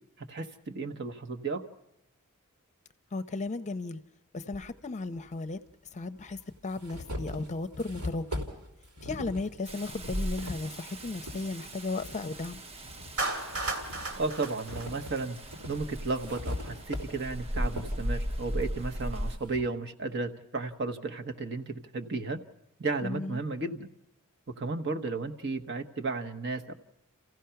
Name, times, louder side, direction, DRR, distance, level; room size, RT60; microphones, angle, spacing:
voice 1, 0.2-1.6 14.2-15.4 15.7-22.4 22.8-23.9 24.5-26.7, right 3 dB, 50° right, 1.1 m, -34 dB
voice 2, 3.1-4.0 4.3-5.6 5.9-8.5 9.0-12.6 23.0-23.4, left 3 dB, 30° left, 0.6 m, -35 dB
sound 1, 4.5-4.6 5.7-5.8 6.3-11.4 11.9-13.1 13.6-19.7, left 1 dB, 85° right, 3.2 m, -41 dB
Rain, 9.6-19.4, equal, 30° right, 0.8 m, -37 dB
Clapping, 13.2-15.6, right 2 dB, 70° right, 2.6 m, -34 dB
29.5 x 15.5 x 5.7 m
head